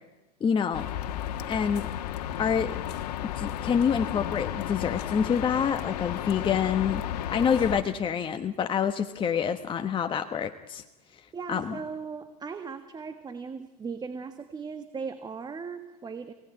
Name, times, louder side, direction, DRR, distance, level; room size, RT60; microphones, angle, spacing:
voice 1, 0.4-0.9 1.5-1.9 2.4-2.8 3.3-7.0 7.3-10.8 11.5-11.8, left 7 dB, 25° left, 7 dB, 1.1 m, -27 dB
sound 1, 0.7-7.8, left 11 dB, 70° left, 1.7 m, -33 dB
voice 2, 11.3-16.3, right 5 dB, 20° right, 9 dB, 1.5 m, -38 dB
26.5 x 18.0 x 8.9 m, 1.1 s
hypercardioid pair, 105°, 21 cm